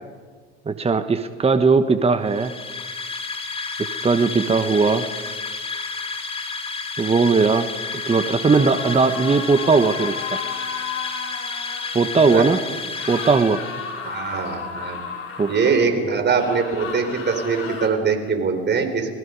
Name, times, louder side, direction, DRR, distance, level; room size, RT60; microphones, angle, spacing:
voice 1, 0.7-2.6 3.8-5.1 7.0-7.7 8.0-10.4 11.9-12.6 13.1-13.7 15.4-15.5, right 4 dB, 20° right, 11 dB, 1.2 m, -19 dB
sound 1, 2.2-14.1, left 4 dB, 20° left, 3.3 m, -31 dB
sound 2, 8.4-12.1 13.0-15.9 16.3-17.9, left 6 dB, 45° left, 6.5 m, -33 dB
voice 2, 14.0-15.0 15.5-19.2, right 5 dB, 35° right, 6 dB, 4.5 m, -22 dB
29.5 x 21.0 x 5.3 m, 1.5 s
hypercardioid pair, 65°, 31 cm